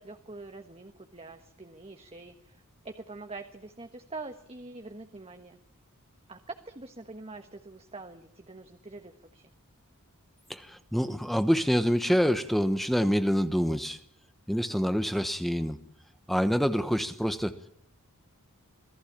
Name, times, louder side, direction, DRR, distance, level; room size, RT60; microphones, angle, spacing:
voice 1, 0.0-5.6 6.3-9.4, right 3 dB, 25° right, 6 dB, 1.5 m, -44 dB
voice 2, 10.5-14.0 14.5-15.8 16.3-17.7, equal, ahead, 11 dB, 1.1 m, -26 dB
27.0 x 18.0 x 8.8 m, 0.64 s
head